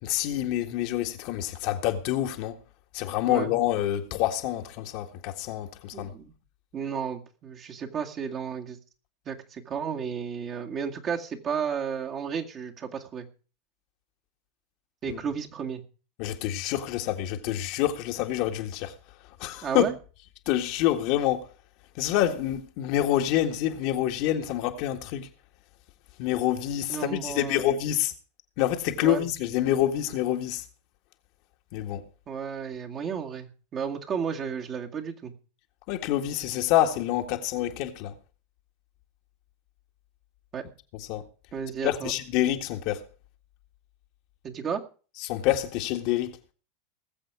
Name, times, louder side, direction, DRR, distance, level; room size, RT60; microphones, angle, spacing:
voice 1, 0.0-2.6 2.9-6.1 15.1-15.2 16.2-18.9 19.4-19.9 20.4-21.5 21.9-25.3 26.2-28.1 28.6-30.6 31.7-32.0 35.9-38.1 40.9-41.2 41.8-43.1 45.2-46.4, left 12 dB, 55° left, 1.7 m, -27 dB
voice 2, 5.9-6.3 6.7-8.8 9.3-13.3 15.0-15.8 19.6-19.9 26.9-27.6 29.0-29.2 32.3-35.3 40.5-40.6 41.5-42.1 44.4-44.8, right 7 dB, 35° right, 2.1 m, -33 dB
19.5 x 7.7 x 4.9 m
hypercardioid pair, 90°, 0 cm